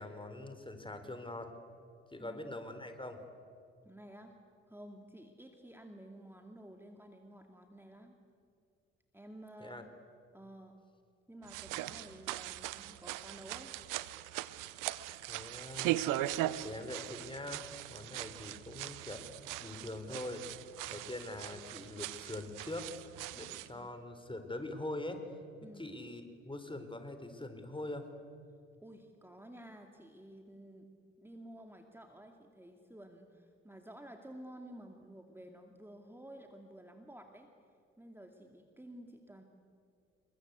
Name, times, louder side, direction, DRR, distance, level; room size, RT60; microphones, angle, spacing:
voice 1, 0.0-1.6 2.1-3.2 9.6-9.8 15.3-16.0 16.6-20.5 20.9-23.0 23.3-25.2 25.6-28.1, left 1 dB, 15° left, 8 dB, 4.2 m, -43 dB
voice 2, 3.8-4.4 4.7-8.1 9.1-9.9 10.3-10.8 11.3-13.8 23.6-23.9 25.6-25.9 28.8-30.9 31.2-37.5 38.0-39.4, right 1 dB, 5° right, 4 dB, 2.6 m, -52 dB
sound 1, 11.4-23.7, right 14 dB, 70° right, 1.0 m, -40 dB
28.0 x 22.5 x 8.3 m, 2.4 s
hypercardioid pair, 45°, 33 cm